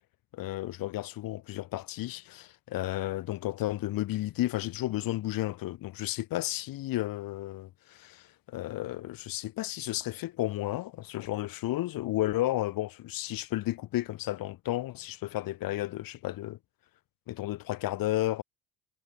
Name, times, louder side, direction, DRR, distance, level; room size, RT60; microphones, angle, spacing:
voice 1, 0.3-16.6 17.3-18.4, left 15 dB, 55° left, 5.2 m, -33 dB
hypercardioid pair, 70°, 41 cm